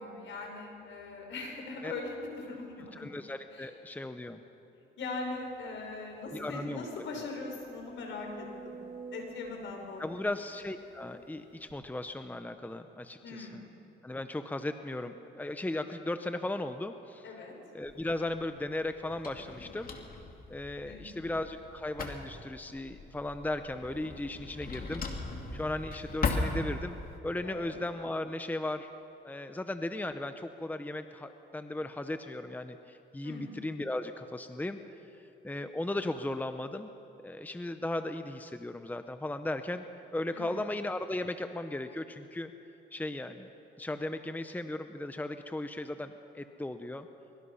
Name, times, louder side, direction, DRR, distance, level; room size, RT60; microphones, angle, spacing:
voice 1, 0.0-3.0 3.5-3.7 5.0-8.8 9.1-10.3 13.2-13.7 17.2-17.5 20.8-21.3 27.4-27.8 33.2-33.5 40.3-40.5, left 3 dB, 70° left, 2 dB, 5.8 m, -41 dB
voice 2, 2.9-4.4 6.3-6.9 10.0-13.6 14.0-17.2 17.7-19.9 20.5-25.1 25.5-27.0 27.2-28.9 29.2-34.8 35.4-36.9 37.2-39.8 40.1-42.5 42.9-43.5 43.8-47.1, left 1 dB, 10° left, 8 dB, 1.0 m, -36 dB
sound 1, 5.7-5.8 6.2-6.3 6.8-11.0 11.7-11.8, right 5 dB, 85° right, 4.1 m, -49 dB
Drawer open or close, 17.8-27.2, left 3 dB, 45° left, 2.9 m, -38 dB
24.5 x 23.5 x 5.7 m, 2.8 s
cardioid pair, 90°, 20 cm